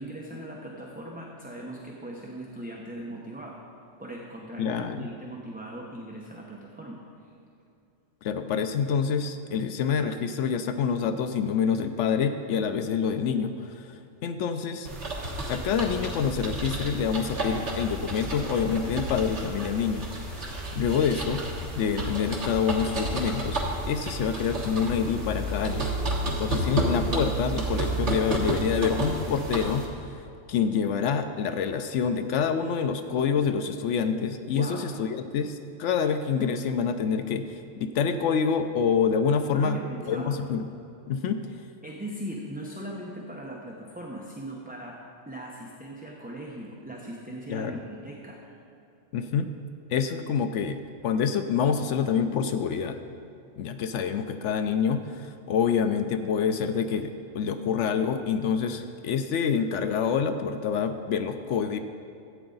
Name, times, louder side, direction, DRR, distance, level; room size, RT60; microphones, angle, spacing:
voice 1, 0.0-3.6 4.0-7.3 34.5-34.9 39.5-40.4 41.8-45.0 45.3-48.5, right 1 dB, 10° right, -3 dB, 0.8 m, -39 dB
voice 2, 4.6-5.1 8.2-14.9 15.5-20.1 20.7-21.4 21.8-23.6 23.9-26.0 26.3-30.2 30.5-39.8 40.1-40.6 41.1-41.4 47.5-47.8 49.1-49.5 49.9-53.0 53.6-61.8, left 6 dB, 75° left, 9 dB, 0.9 m, -27 dB
sound 1, 14.8-29.8, right 1 dB, 70° right, 1.8 m, -31 dB
14.5 x 8.7 x 3.9 m, 2.6 s
omnidirectional pair, 1.2 m